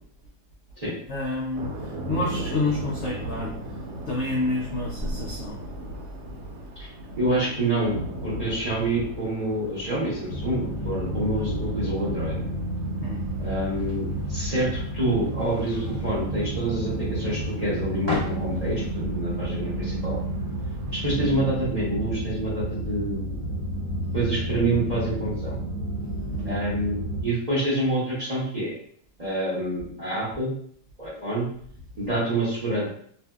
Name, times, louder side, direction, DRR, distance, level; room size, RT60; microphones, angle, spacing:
voice 1, 1.1-3.5 4.1-5.6 13.0-13.3 26.3-26.6, left 2 dB, 90° left, -4 dB, 0.6 m, -29 dB
sound 1, 1.5-21.2, right 1 dB, 85° right, 1.2 m, -39 dB
voice 2, 7.2-8.0 8.2-12.4 13.4-20.2 20.9-23.3 24.1-25.6 26.4-28.8 29.2-30.5 31.0-31.5 32.0-32.9, right 1 dB, 40° right, -9 dB, 0.5 m, -27 dB
sound 2, 10.3-27.2, right 1 dB, 60° right, 1.1 m, -30 dB
sound 3, 13.6-18.9, left 2 dB, 15° left, 1.0 m, -38 dB
2.6 x 2.6 x 2.3 m, 0.62 s
omnidirectional pair, 1.8 m